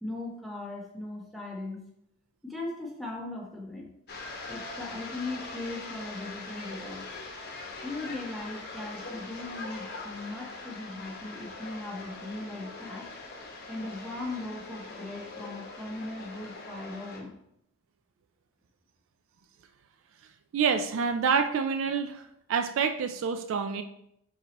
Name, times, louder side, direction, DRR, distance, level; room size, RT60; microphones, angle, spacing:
voice 1, 0.0-1.8 2.4-3.9 4.5-7.1 7.8-13.1 13.7-17.4, left 2 dB, ahead, -2 dB, 0.8 m, -38 dB
sound 1, 4.1-17.2, left 3 dB, 45° left, 0.8 m, -42 dB
voice 2, 20.5-22.2 22.5-23.8, right 6 dB, 65° right, 8 dB, 0.3 m, -27 dB
4.6 x 3.9 x 2.9 m, 0.77 s
head